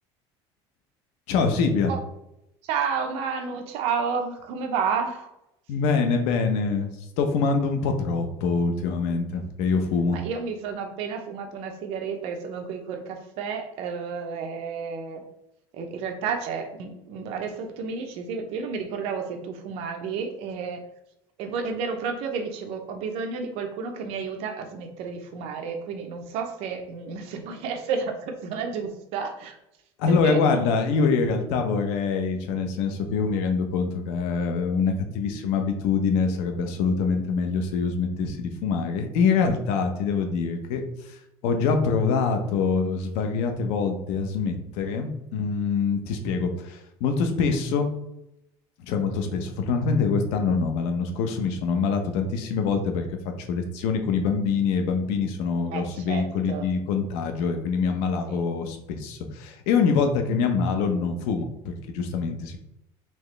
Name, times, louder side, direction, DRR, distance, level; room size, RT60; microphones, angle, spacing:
voice 1, 1.3-1.9 5.7-6.9 7.2-10.2 30.0-41.2 41.4-47.9 48.9-53.1 53.4-62.6, left 5 dB, 75° left, 5 dB, 0.8 m, -25 dB
voice 2, 2.6-5.3 9.4-9.5 10.1-15.2 15.7-20.8 21.4-29.6 30.1-30.4 55.7-56.7 58.2-58.4, right 5 dB, 65° right, 5 dB, 0.7 m, -31 dB
4.4 x 2.9 x 3.3 m, 0.85 s
cardioid pair, 140°, 11 cm